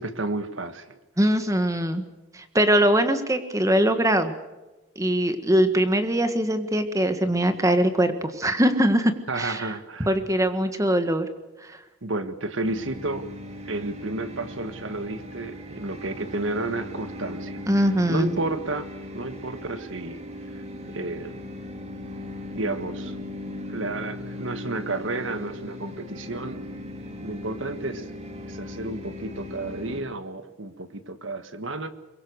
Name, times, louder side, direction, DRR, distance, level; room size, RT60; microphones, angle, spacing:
voice 1, 0.0-1.0 9.3-10.1 12.0-13.3 13.7-17.6 18.1-20.2 20.5-21.4 22.5-23.2 23.7-26.6 27.2-28.1 28.4-31.9, right 2 dB, 75° right, 10 dB, 1.6 m, -31 dB
voice 2, 1.2-2.0 2.3-4.3 4.9-9.7 10.0-11.3 11.7-11.8 17.7-18.4, right 1 dB, 15° right, 9 dB, 1.6 m, -22 dB
sound 1, 12.6-30.0, left 1 dB, 35° right, 2.6 m, -38 dB
23.5 x 22.0 x 6.5 m, 1.1 s
head